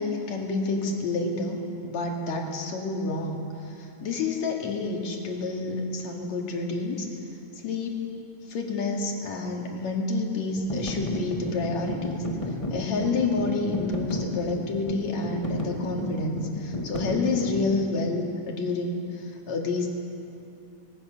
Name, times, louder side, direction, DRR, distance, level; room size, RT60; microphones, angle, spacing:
voice 1, 0.0-3.4 3.8-7.1 7.6-8.0 8.5-12.2 12.7-19.9, left 3 dB, 70° left, 0 dB, 3.6 m, -29 dB
sound 1, 10.5-17.9, left 1 dB, 20° left, 0.9 m, -33 dB
25.5 x 19.5 x 6.7 m, 2.7 s
omnidirectional pair, 3.3 m